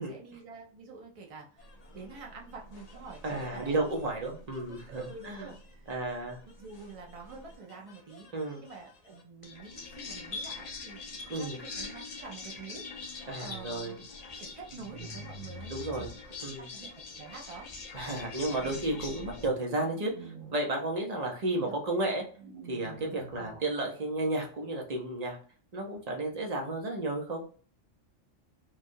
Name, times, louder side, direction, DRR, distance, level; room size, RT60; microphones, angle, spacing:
voice 1, 0.0-1.7 1.9-3.9 4.9-5.9 6.6-8.3 8.6-11.0 11.3-14.1 14.3-16.2 16.4-17.7 21.6-21.8 23.4-23.6, right 4 dB, 65° right, -1 dB, 0.3 m, -47 dB
sound 1, 1.6-19.5, left 3 dB, 50° left, 0.4 m, -45 dB
voice 2, 3.2-5.5 5.9-6.4 8.3-8.6 11.3-11.6 13.3-14.0 15.7-16.1 16.4-16.7 17.9-22.2 22.7-25.4 25.7-27.4, right 2 dB, 40° right, 1 dB, 0.7 m, -33 dB
sound 2, 14.7-16.1 18.4-19.6 19.9-20.6 22.4-23.6, right 3 dB, 85° right, 1.3 m, -46 dB
3.2 x 2.3 x 2.6 m, 0.43 s
omnidirectional pair, 1.3 m